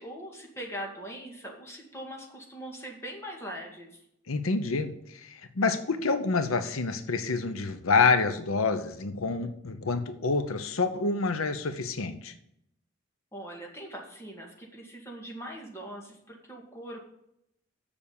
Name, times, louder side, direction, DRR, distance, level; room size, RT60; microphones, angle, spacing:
voice 1, 0.0-3.9 13.3-17.0, equal, 15° left, -1 dB, 2.0 m, -41 dB
voice 2, 4.3-12.3, left 4 dB, 90° left, 10 dB, 0.8 m, -27 dB
7.1 x 6.9 x 7.0 m, 0.76 s
head